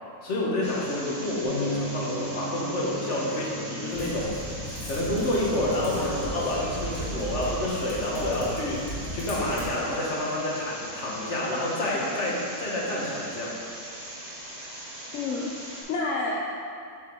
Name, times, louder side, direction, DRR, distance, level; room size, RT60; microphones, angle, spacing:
voice 1, 0.2-4.4 4.9-13.6, left 1 dB, 45° left, -4 dB, 1.5 m, -28 dB
sound 1, 0.6-15.8, right 1 dB, 20° right, 1.7 m, -40 dB
Bass guitar, 1.4-7.7, equal, 25° left, 0.5 m, -39 dB
Typing, 3.9-9.7, equal, 80° left, 2.2 m, -36 dB
voice 2, 15.1-16.5, left 3 dB, 60° left, -3 dB, 0.9 m, -30 dB
7.9 x 5.0 x 3.7 m, 2.5 s
omnidirectional pair, 1.8 m